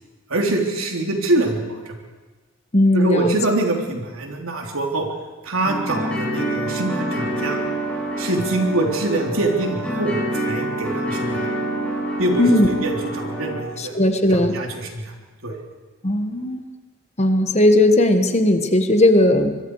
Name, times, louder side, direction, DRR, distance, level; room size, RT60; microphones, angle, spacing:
voice 1, 0.3-2.0 2.9-5.1 5.4-7.6 8.2-11.5 12.2-14.0 14.3-15.1 15.4-15.6, right 2 dB, 90° right, 1 dB, 3.4 m, -24 dB
voice 2, 2.7-3.4 12.4-12.7 13.8-14.6 16.0-16.6 17.2-19.6, left 1 dB, 30° left, 7 dB, 1.4 m, -17 dB
sound 1, 5.6-13.6, right 1 dB, 5° left, 7.3 m, -26 dB
25.0 x 22.0 x 4.8 m, 1.3 s
head